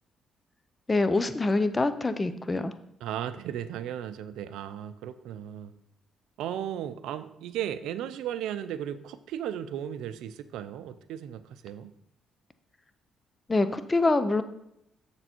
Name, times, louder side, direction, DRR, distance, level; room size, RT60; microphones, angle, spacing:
voice 1, 0.9-2.7 13.5-14.4, left 2 dB, 20° left, 11 dB, 0.7 m, -25 dB
voice 2, 3.0-5.7 6.4-11.9, right 10 dB, 90° right, 12 dB, 0.5 m, -35 dB
7.2 x 6.8 x 4.4 m, 0.81 s
cardioid pair, 90°, 0 cm